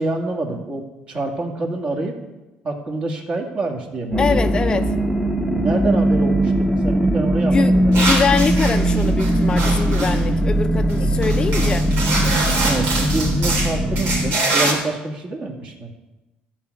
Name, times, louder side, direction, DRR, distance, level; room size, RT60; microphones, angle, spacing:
voice 1, 0.0-2.2 2.6-4.4 5.6-8.1 11.0-11.4 12.6-15.9, right 2 dB, 40° right, 2.2 m, -27 dB
sound 1, 4.1-14.3, right 1 dB, ahead, 1.0 m, -19 dB
voice 2, 4.2-4.9 7.5-11.9, left 5 dB, 30° left, 0.6 m, -23 dB
sound 2, 7.9-10.2 10.9-11.0 11.2-14.7, right 2 dB, 85° right, 3.5 m, -24 dB
14.0 x 4.8 x 8.3 m
cardioid pair, 115°, 3 cm